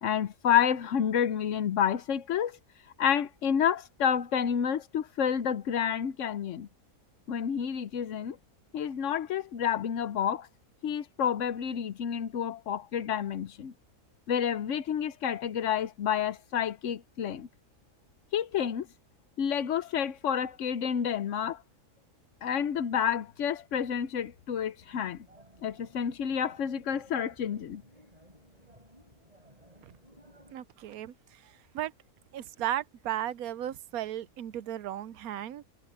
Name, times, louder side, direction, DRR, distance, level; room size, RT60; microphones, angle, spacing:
voice 1, 0.0-2.5 3.0-6.7 7.3-8.4 8.7-10.5 10.8-13.7 14.3-17.5 18.3-18.9 19.4-21.6 22.4-25.2 25.6-27.8, left 8 dB, 60° left, 1.0 m, -29 dB
sound 1, 24.8-30.5, right 1 dB, 25° right, 4.6 m, -58 dB
voice 2, 30.5-31.9 32.3-35.6, right 12 dB, 75° right, 1.1 m, -35 dB
omnidirectional pair, 1.6 m